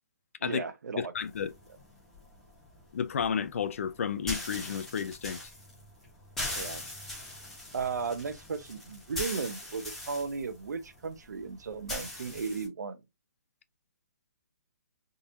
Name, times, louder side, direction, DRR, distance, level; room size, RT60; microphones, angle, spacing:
voice 1, 0.4-1.1 6.5-6.8 7.7-13.0, right 5 dB, 85° right, 0.8 m, -35 dB
voice 2, 0.9-1.5 2.9-5.4, left 7 dB, 55° left, 0.5 m, -32 dB
sound 1, 1.2-12.7, left 1 dB, 5° left, 1.2 m, -41 dB
3.8 x 2.9 x 2.6 m
hypercardioid pair, 170°, 9 cm